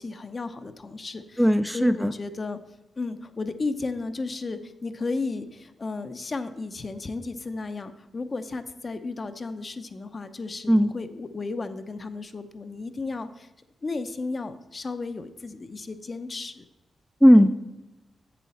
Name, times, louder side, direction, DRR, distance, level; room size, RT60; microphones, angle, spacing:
voice 1, 0.0-1.4 1.7-2.6 3.0-13.5 13.8-16.6, left 3 dB, 45° left, 9 dB, 0.6 m, -33 dB
voice 2, 1.4-2.1 10.7-10.9 17.2-17.7, equal, ahead, 10 dB, 0.4 m, -17 dB
7.5 x 7.1 x 4.2 m, 1.1 s
cardioid pair, 60°, 0 cm